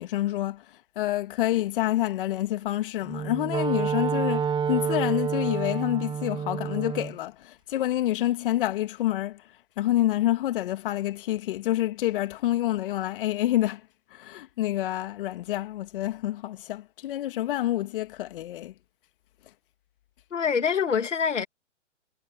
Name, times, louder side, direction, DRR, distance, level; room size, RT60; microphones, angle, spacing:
voice 1, 0.0-18.7, left 14 dB, 45° left, 1.7 m, -28 dB
Wind instrument woodwind instrument, 3.0-7.2, right 7 dB, 15° right, 4.9 m, -28 dB
voice 2, 20.3-21.5, left 6 dB, 75° left, 2.6 m, -25 dB
hypercardioid pair, 130°, 37 cm